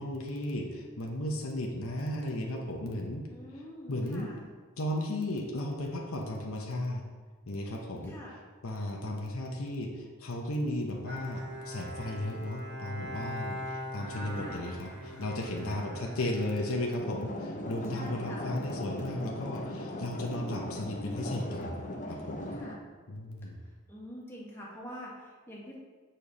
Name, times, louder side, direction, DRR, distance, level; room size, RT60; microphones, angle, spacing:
voice 1, 0.0-3.3 3.9-4.3 4.8-7.0 7.5-8.2 8.6-22.5 23.1-23.6, left 1 dB, 80° left, 0 dB, 1.0 m, -35 dB
voice 2, 3.3-4.5 8.0-8.4 14.3-14.7 15.6-15.9 17.5-18.5 22.5-22.8 23.4-23.5 23.9-25.7, equal, 10° left, -6 dB, 1.8 m, -46 dB
Bowed string instrument, 11.0-17.7, equal, 60° right, 1.7 m, -42 dB
sound 1, 17.0-22.8, left 1 dB, 35° left, 0.8 m, -39 dB
6.8 x 4.4 x 5.4 m, 1.4 s
head